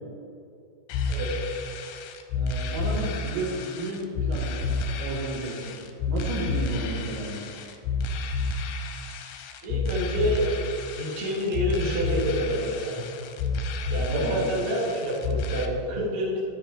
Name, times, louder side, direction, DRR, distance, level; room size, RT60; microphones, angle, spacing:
sound 1, 0.9-15.7, left 3 dB, 85° left, 2.7 m, -30 dB
voice 1, 2.3-5.8 6.1-7.4 14.1-14.4, right 1 dB, 75° right, -3 dB, 3.8 m, -32 dB
voice 2, 9.6-10.5 10.9-13.0 13.9-16.4, equal, 60° right, -4 dB, 1.5 m, -28 dB
10.0 x 8.8 x 3.4 m, 2.6 s
omnidirectional pair, 5.4 m